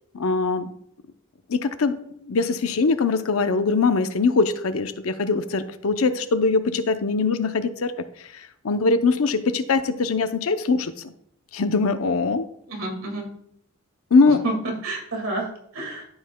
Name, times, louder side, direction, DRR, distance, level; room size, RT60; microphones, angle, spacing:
voice 1, 0.1-0.7 1.5-2.0 2.3-7.9 8.6-10.9 11.5-12.5 14.1-14.4, left 4 dB, 75° left, 10 dB, 0.6 m, -22 dB
voice 2, 12.7-13.3 14.3-16.1, right 2 dB, 70° right, 1 dB, 2.0 m, -30 dB
13.0 x 5.6 x 2.2 m, 0.70 s
head